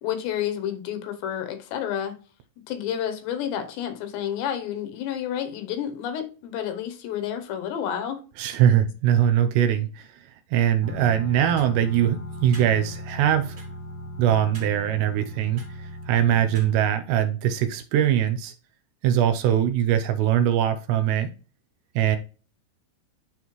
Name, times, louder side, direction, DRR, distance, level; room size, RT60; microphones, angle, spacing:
voice 1, 0.0-2.1 2.7-8.2, left 9 dB, 75° left, 2.9 m, -30 dB
voice 2, 8.4-10.1 10.5-13.6 14.2-18.5 19.0-21.3 22.0-22.2, right 10 dB, 80° right, 2.7 m, -22 dB
sound 1, 10.8-17.0, left 1 dB, 45° right, 1.8 m, -38 dB
11.5 x 4.1 x 3.1 m
omnidirectional pair, 5.2 m